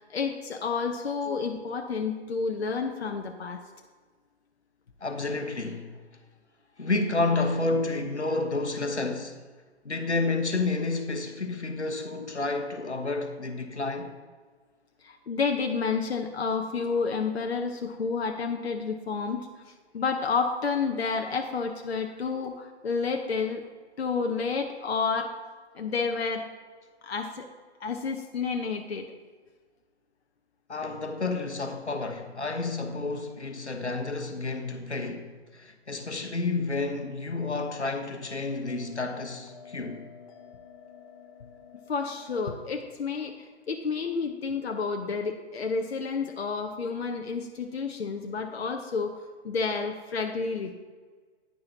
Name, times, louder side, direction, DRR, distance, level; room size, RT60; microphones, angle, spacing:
voice 1, 0.0-3.6 15.0-23.6 24.0-25.3 25.7-26.5 27.0-27.5 27.8-29.1 41.9-49.2 49.4-50.7, left 5 dB, 65° left, 0.9 m, -30 dB
voice 2, 5.0-5.9 6.8-9.4 9.8-14.1 30.7-40.0, left 3 dB, 85° left, 1.2 m, -30 dB
Bell, 38.6-43.7, left 7 dB, 30° left, 0.8 m, -52 dB
10.5 x 9.5 x 2.8 m
figure-of-eight pair, 125°, 33 cm